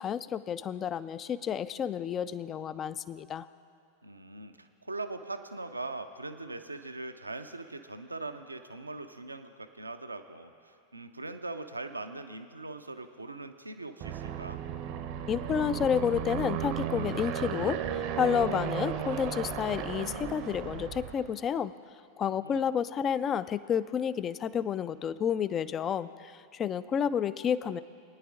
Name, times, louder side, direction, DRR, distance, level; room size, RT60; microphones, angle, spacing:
voice 1, 0.0-3.5 15.3-21.7 22.2-27.8, left 8 dB, 25° left, 16 dB, 0.3 m, -30 dB
voice 2, 4.0-14.6 22.3-22.7, right 2 dB, 80° right, 8 dB, 0.6 m, -41 dB
Aircraft, 14.0-21.3, right 8 dB, 45° right, 0.7 m, -35 dB
22.0 x 10.0 x 2.5 m, 2.7 s
figure-of-eight pair, 90°, 0 cm